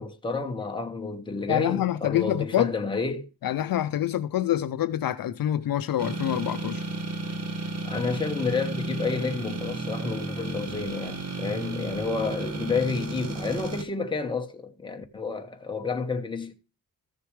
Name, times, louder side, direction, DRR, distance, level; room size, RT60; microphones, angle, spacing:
voice 1, 0.0-3.3 7.8-16.5, left 4 dB, 10° left, 1.0 m, -30 dB
voice 2, 1.5-2.7 3.4-6.8, left 12 dB, 60° left, 0.6 m, -26 dB
sound 1, 6.0-13.8, right 2 dB, 40° right, 1.2 m, -33 dB
14.5 x 6.7 x 3.2 m
wide cardioid pair, 165°, 39 cm